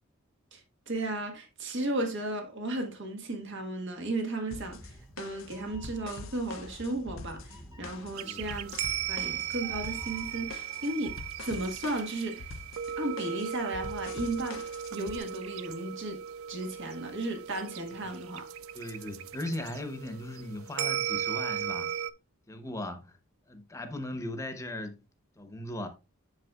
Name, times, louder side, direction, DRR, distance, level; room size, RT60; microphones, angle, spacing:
voice 1, 0.5-8.7 9.1-12.5 13.0-14.6 14.9-16.2 16.5-18.5, right 2 dB, 60° right, 1.5 m, -35 dB
sound 1, 4.5-15.2, left 3 dB, 70° left, 0.6 m, -45 dB
Meow, 4.5-11.2, equal, 15° right, 1.1 m, -51 dB
sound 2, 8.1-22.1, right 10 dB, 85° right, 0.4 m, -37 dB
voice 2, 8.2-8.5 18.7-21.9 22.5-23.1 23.5-25.0 25.4-25.9, left 1 dB, 15° left, 0.9 m, -38 dB
8.0 x 6.6 x 2.4 m
head